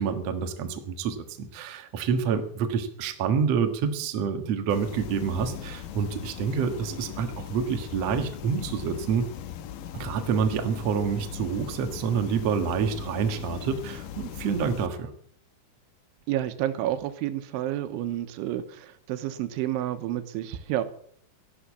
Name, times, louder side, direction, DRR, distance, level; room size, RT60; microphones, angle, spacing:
voice 1, 0.0-9.3 9.9-15.1, right 6 dB, 65° right, 6 dB, 1.6 m, -28 dB
sound 1, 4.7-14.9, left 10 dB, 80° left, 1.9 m, -39 dB
voice 2, 16.3-20.8, right 13 dB, 85° right, 10 dB, 3.4 m, -30 dB
13.5 x 11.5 x 7.2 m, 0.62 s
omnidirectional pair, 5.4 m